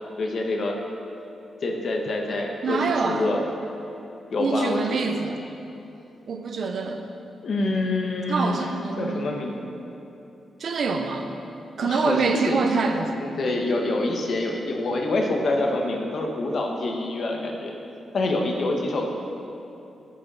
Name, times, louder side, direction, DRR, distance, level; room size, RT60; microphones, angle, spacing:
voice 1, 0.2-0.8 1.6-3.4 4.3-5.0 7.4-8.6 9.0-9.6 11.8-12.2 12.5-12.6 13.1-17.7 18.1-19.2, left 2 dB, 50° left, 1 dB, 1.2 m, -26 dB
voice 2, 2.6-3.3 4.4-5.4 6.3-7.0 8.3-9.3 10.6-11.3 11.8-13.1, right 4 dB, 50° right, 5 dB, 0.8 m, -25 dB
10.5 x 7.6 x 5.5 m, 2.8 s
wide cardioid pair, 160°, 0 cm